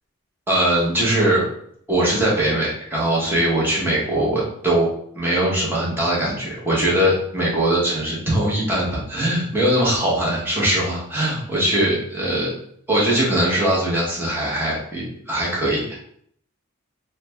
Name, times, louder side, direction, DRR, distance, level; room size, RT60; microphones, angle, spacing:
voice 1, 0.5-1.4 1.9-4.9 5.1-12.5 12.9-16.0, right 1 dB, 10° right, -7 dB, 0.9 m, -21 dB
3.2 x 2.1 x 3.3 m, 0.67 s
head